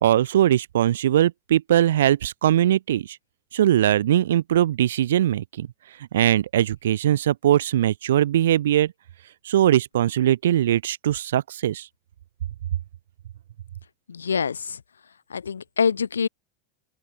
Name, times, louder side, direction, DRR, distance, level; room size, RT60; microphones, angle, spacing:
voice 1, 0.0-3.2 3.5-5.7 6.1-8.9 9.4-11.9, right 12 dB, 75° right, 0.7 m, -21 dB
voice 2, 14.1-14.8 15.3-16.3, left 6 dB, 85° left, 0.5 m, -25 dB
open air
hypercardioid pair, 85°, 0 cm